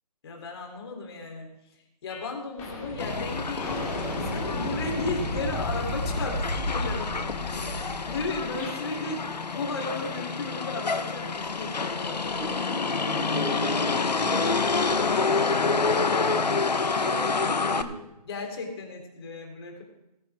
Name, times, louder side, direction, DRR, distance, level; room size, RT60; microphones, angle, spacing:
voice 1, 0.2-1.5 2.0-3.9 4.3-12.5 15.1-15.9 17.0-17.1 18.3-19.8, left 3 dB, 40° left, 3 dB, 3.3 m, -35 dB
sound 1, 2.1-2.3 2.6-8.8, left 1 dB, 15° left, 2.7 m, -33 dB
Motor vehicle (road), 3.0-17.8, left 4 dB, 80° left, 1.1 m, -28 dB
voice 2, 12.4-14.7 15.3-15.9 16.9-18.1, right 3 dB, 15° right, -1 dB, 1.5 m, -38 dB
19.0 x 10.0 x 3.6 m, 0.89 s
figure-of-eight pair, 155°, 21 cm